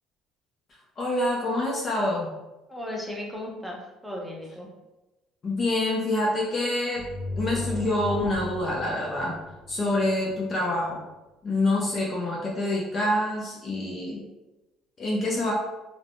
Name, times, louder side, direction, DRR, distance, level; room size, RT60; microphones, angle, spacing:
voice 1, 1.0-2.3 5.4-7.1 7.4-9.4 9.7-11.0 11.4-14.2 15.0-15.5, left 1 dB, 35° left, -3 dB, 0.5 m, -26 dB
voice 2, 2.7-4.7, left 1 dB, 5° right, -2 dB, 0.7 m, -36 dB
sound 1, 6.9-10.5, left 2 dB, 40° right, 0.7 m, -36 dB
3.2 x 2.1 x 2.5 m, 1.0 s
cardioid pair, 95°, 0 cm